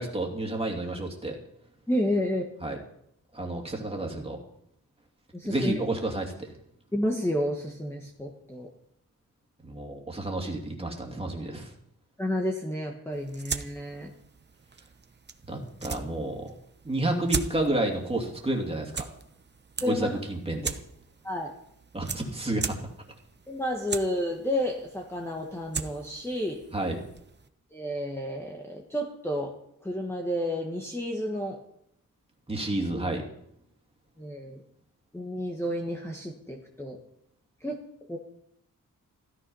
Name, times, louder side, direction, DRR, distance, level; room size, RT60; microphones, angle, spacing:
voice 1, 0.0-1.4 2.6-2.8 3.3-4.4 5.5-6.5 9.6-11.7 15.5-16.5 16.8-19.1 19.8-20.8 21.9-22.7 26.7-27.0 32.5-33.2, right 2 dB, 15° right, 1 dB, 2.7 m, -30 dB
voice 2, 1.9-2.4 5.3-5.7 6.9-8.7 12.2-14.1 19.8-20.2 21.2-21.5 23.5-26.6 27.7-29.5 29.8-31.6 34.2-34.6 35.1-37.0 37.6-37.8 38.1-38.2, left 1 dB, 10° left, 0 dB, 1.4 m, -31 dB
sound 1, 13.1-27.5, right 5 dB, 30° right, 0.9 m, -39 dB
16.0 x 13.5 x 5.6 m, 0.74 s
wide cardioid pair, 175°, 33 cm